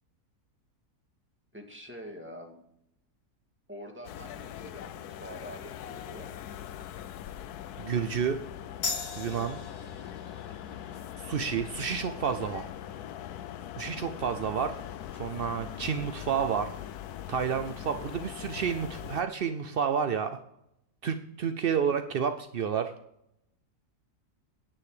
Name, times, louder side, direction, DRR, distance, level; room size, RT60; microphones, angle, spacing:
voice 1, 1.5-2.6 3.7-6.3, equal, 5° right, 1 dB, 2.0 m, -45 dB
sound 1, 4.0-19.2, left 11 dB, 75° left, 1.1 m, -41 dB
voice 2, 7.8-8.4 9.2-9.6 11.2-12.6 13.8-14.7 15.2-16.7 17.3-20.4 21.0-22.9, right 7 dB, 65° right, 8 dB, 0.5 m, -30 dB
sound 2, 8.8-15.9, left 4 dB, 40° left, 1.4 m, -43 dB
9.8 x 8.9 x 5.0 m, 0.76 s
omnidirectional pair, 1.7 m